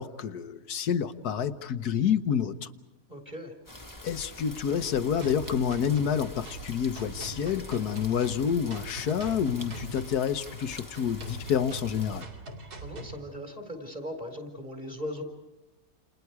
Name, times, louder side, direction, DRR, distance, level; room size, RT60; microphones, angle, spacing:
voice 1, 0.0-2.7 4.0-12.2, left 8 dB, 80° left, 11 dB, 1.6 m, -28 dB
voice 2, 3.1-3.5 12.8-15.2, left 1 dB, 25° right, 4 dB, 4.5 m, -38 dB
sound 1, 3.7-12.2, left 1 dB, 15° left, 1.7 m, -45 dB
sound 2, 5.2-13.2, right 2 dB, 85° right, 3.0 m, -43 dB
29.5 x 29.0 x 4.8 m, 1.0 s
omnidirectional pair, 1.6 m